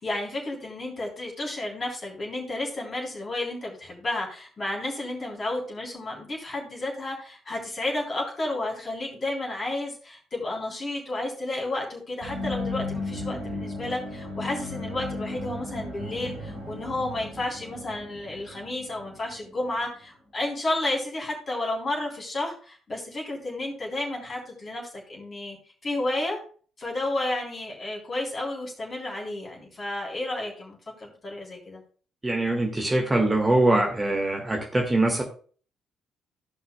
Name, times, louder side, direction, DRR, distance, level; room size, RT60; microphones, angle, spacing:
voice 1, 0.0-25.6 25.8-26.4 26.8-31.8, left 2 dB, 35° left, -1 dB, 3.4 m, -32 dB
sound 1, 12.2-20.0, left 2 dB, 75° right, 3.1 m, -35 dB
voice 2, 32.2-35.2, right 2 dB, 20° right, 1 dB, 1.6 m, -23 dB
15.5 x 5.6 x 2.3 m, 0.41 s
figure-of-eight pair, 45°, 0 cm